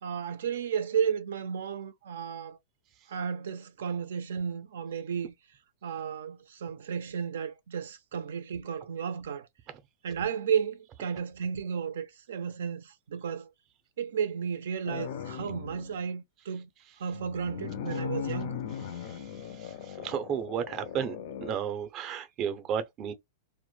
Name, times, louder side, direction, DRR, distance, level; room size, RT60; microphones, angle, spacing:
voice 1, 0.0-2.6 3.1-5.3 5.8-9.5 10.0-13.5 14.0-16.7 17.0-18.6, right 7 dB, 85° right, 0.4 m, -33 dB
sound 1, 14.8-15.9 17.1-21.5, left 8 dB, 55° left, 0.4 m, -38 dB
voice 2, 18.9-19.2 19.6-21.2 21.4-23.1, right 8 dB, 25° right, 0.5 m, -33 dB
2.1 x 2.0 x 3.1 m
supercardioid pair, 160°, 0 cm